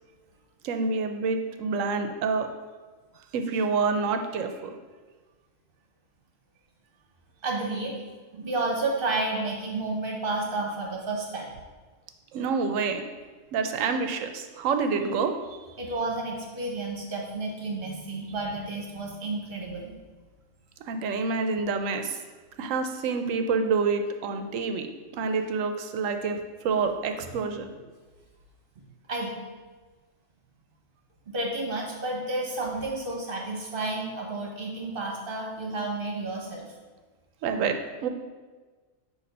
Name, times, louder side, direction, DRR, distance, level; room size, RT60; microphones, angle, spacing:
voice 1, 0.6-2.5 3.3-4.7 12.3-13.0 13.5-15.4 20.9-22.2 22.6-24.9 25.1-27.7 37.4-38.1, right 4 dB, 85° right, 6 dB, 1.0 m, -27 dB
voice 2, 7.4-8.0 8.3-11.5 15.8-19.9 27.2-27.3 29.1-29.4 31.3-36.7, right 2 dB, 45° right, -2 dB, 1.2 m, -31 dB
6.7 x 2.7 x 5.2 m, 1.4 s
omnidirectional pair, 1.3 m